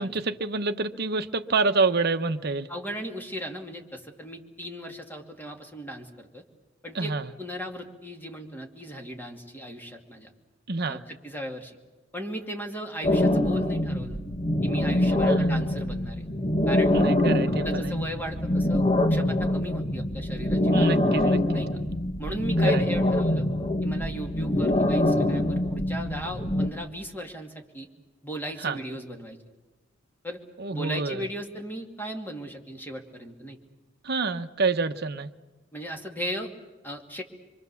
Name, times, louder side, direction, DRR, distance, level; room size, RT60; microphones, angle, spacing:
voice 1, 0.0-2.7 6.9-7.3 10.7-11.0 15.2-15.5 16.9-17.9 20.7-21.6 22.6-22.8 28.6-28.8 30.6-31.3 34.0-35.3, right 3 dB, 55° right, 8 dB, 1.0 m, -27 dB
voice 2, 2.7-6.4 6.8-10.3 10.9-11.7 12.1-14.2 14.6-16.3 16.7-17.0 17.6-18.8 19.1-21.7 22.2-23.5 23.8-27.9 28.2-29.4 30.2-30.4 30.7-33.6 35.7-36.5 36.8-37.2, equal, 10° left, 2 dB, 2.5 m, -37 dB
sound 1, 13.0-26.7, left 1 dB, 30° left, 1.4 m, -24 dB
26.0 x 24.5 x 7.1 m, 1.2 s
head